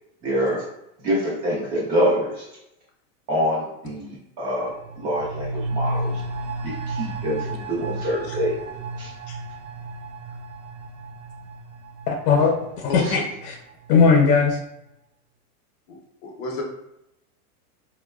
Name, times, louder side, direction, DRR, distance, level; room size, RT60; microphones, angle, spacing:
voice 1, 0.2-0.6 1.0-2.5 3.3-4.7 5.0-6.2 6.6-8.5 9.0-9.1 13.0-13.2, equal, 20° right, -5 dB, 0.5 m, -25 dB
sound 1, 4.6-14.0 14.3-14.4, right 2 dB, 90° right, 0.7 m, -33 dB
voice 2, 12.1-13.6 13.9-14.6, left 5 dB, 85° left, 0 dB, 0.7 m, -19 dB
voice 3, 16.2-16.6, left 3 dB, 45° left, 0 dB, 0.6 m, -30 dB
3.9 x 2.2 x 2.2 m, 0.83 s
supercardioid pair, 170°, 46 cm